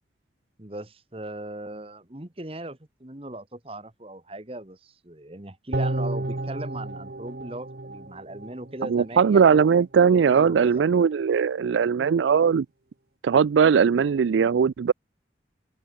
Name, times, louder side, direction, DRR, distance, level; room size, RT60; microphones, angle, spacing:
voice 1, 0.6-9.6 10.1-10.8, right 1 dB, 30° right, 1.6 m, -38 dB
sound 1, 5.7-9.1 9.4-9.5, right 2 dB, 55° right, 1.2 m, -31 dB
voice 2, 8.9-12.7 13.2-14.9, right 6 dB, 85° right, 0.4 m, -19 dB
open air
head